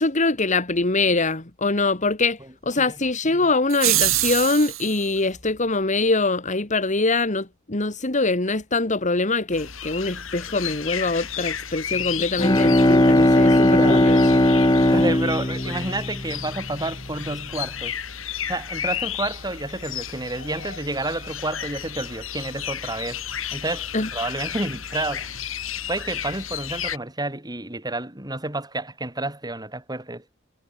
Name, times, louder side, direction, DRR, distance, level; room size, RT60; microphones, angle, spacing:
voice 1, 0.0-14.2 23.9-24.1, left 3 dB, 40° left, 2.2 m, -23 dB
sound 1, 3.7-5.0, right 15 dB, 90° right, 4.3 m, -23 dB
sound 2, 9.5-27.0, left 9 dB, 80° left, 6.4 m, -33 dB
Bowed string instrument, 12.2-16.9, left 1 dB, 20° left, 2.0 m, -18 dB
voice 2, 13.5-14.1 14.8-18.0 18.5-23.2 23.5-25.4 25.9-30.2, right 2 dB, 20° right, 7.4 m, -30 dB
head